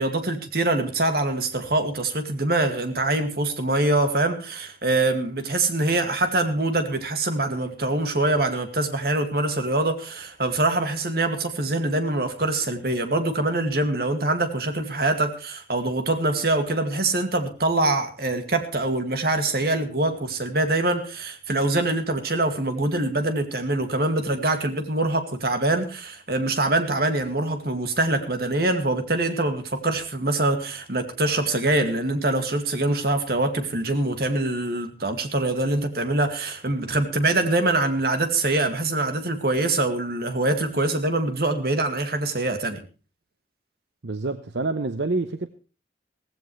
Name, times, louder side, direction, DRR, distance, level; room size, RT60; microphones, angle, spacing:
voice 1, 0.0-42.8, right 2 dB, 55° right, 2.2 m, -24 dB
voice 2, 44.0-45.5, right 3 dB, 75° right, 0.8 m, -27 dB
17.0 x 16.0 x 3.2 m
head